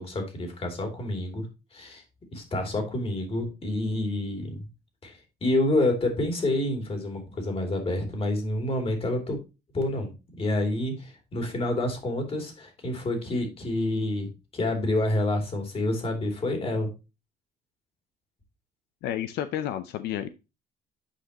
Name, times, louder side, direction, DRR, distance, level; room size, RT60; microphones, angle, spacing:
voice 1, 0.0-1.5 1.7-2.0 2.3-4.6 5.0-9.4 9.7-10.1 10.4-16.9, left 1 dB, 35° left, 4 dB, 2.9 m, -28 dB
voice 2, 19.0-20.3, left 11 dB, 80° left, 12 dB, 0.6 m, -31 dB
8.4 x 5.2 x 2.9 m, 0.27 s
cardioid pair, 110°, 17 cm